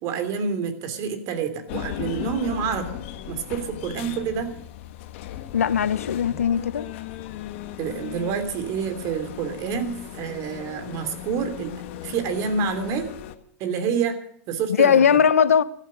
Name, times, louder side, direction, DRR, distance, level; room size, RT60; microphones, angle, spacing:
voice 1, 0.0-3.0 3.3-4.5 7.8-11.8 12.0-13.1 13.6-14.2 14.5-15.0, right 6 dB, 45° right, 3.0 m, -28 dB
sound 1, 1.7-13.4, left 12 dB, 60° left, 1.5 m, -37 dB
voice 2, 5.5-6.9 14.7-15.6, left 7 dB, 90° left, 0.9 m, -19 dB
14.0 x 12.5 x 6.4 m
hypercardioid pair, 120°, 8 cm